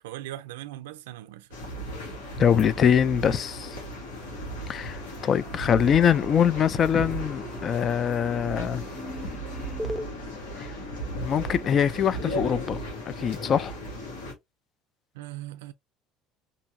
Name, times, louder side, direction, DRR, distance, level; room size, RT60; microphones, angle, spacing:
voice 1, 0.0-1.5 15.1-15.7, right 14 dB, 85° right, 0.3 m, -39 dB
sound 1, 1.5-14.3, equal, 90° left, 1.3 m, -36 dB
voice 2, 2.4-3.8 4.7-8.8 10.6-10.7 11.2-13.8, left 8 dB, 45° left, 0.3 m, -23 dB
sound 2, 4.1-4.6 4.9-10.1, equal, ahead, 0.6 m, -41 dB
2.7 x 2.7 x 2.5 m
supercardioid pair, 85°, 0 cm